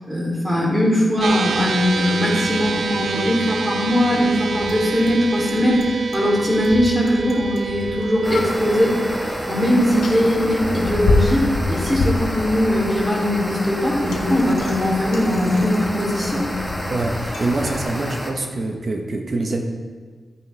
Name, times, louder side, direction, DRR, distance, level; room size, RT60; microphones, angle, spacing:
voice 1, 0.1-9.0 9.5-16.5, equal, 20° right, -4 dB, 3.3 m, -20 dB
sound 1, 1.2-13.7, right 4 dB, 85° right, 0.6 m, -29 dB
Bicycle, 1.5-17.8, left 3 dB, 85° left, 1.2 m, -29 dB
sound 2, 8.2-18.3, equal, 5° right, 1.5 m, -30 dB
voice 2, 16.9-19.6, right 2 dB, 50° right, 3 dB, 1.1 m, -25 dB
13.0 x 8.8 x 3.4 m, 1.5 s
wide cardioid pair, 95°, 0 cm